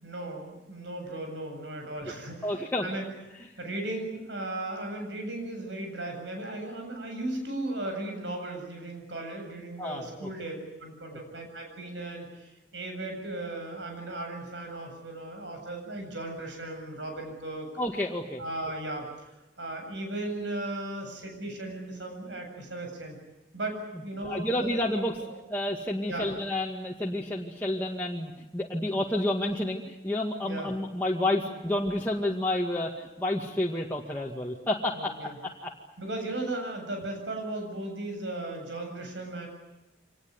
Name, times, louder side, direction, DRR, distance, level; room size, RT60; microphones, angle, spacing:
voice 1, 0.0-3.1 3.6-17.7 18.4-19.1 19.6-23.2 23.5-24.8 25.2-25.4 26.1-26.3 30.4-30.7 34.9-35.4 36.0-39.5, right 2 dB, 85° right, 3 dB, 7.7 m, -36 dB
voice 2, 2.4-2.9 9.8-10.3 17.8-18.4 24.2-25.2 25.5-35.1 35.6-35.7, left 1 dB, 10° left, -3 dB, 2.1 m, -30 dB
25.5 x 19.5 x 9.7 m, 1.0 s
head